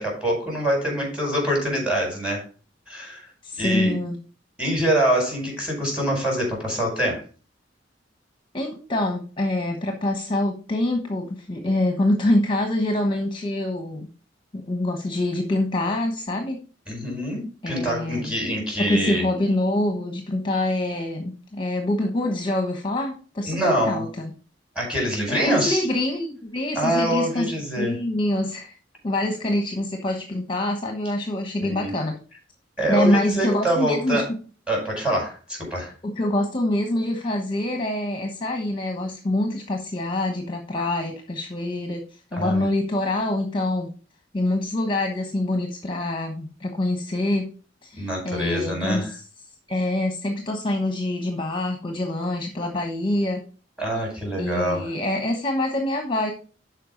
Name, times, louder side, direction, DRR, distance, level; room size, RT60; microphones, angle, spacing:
voice 1, 0.0-2.4 2.9-3.3 3.6-3.9 4.6-7.2 16.9-19.2 23.4-24.0 24.7-25.8 26.7-28.0 31.6-31.9 32.8-34.3 34.7-35.9 42.3-42.7 47.9-49.1 53.8-54.9, right 1 dB, 5° right, -1 dB, 5.0 m, -25 dB
voice 2, 3.4-4.2 8.5-14.1 14.5-16.6 17.6-18.3 18.8-24.3 25.3-28.8 29.0-32.1 32.9-34.2 36.0-42.0 42.3-43.9 44.3-47.5 47.8-49.2 49.7-53.4 54.4-56.3, left 1 dB, 25° left, 3 dB, 1.1 m, -25 dB
12.0 x 4.7 x 3.9 m, 0.37 s
head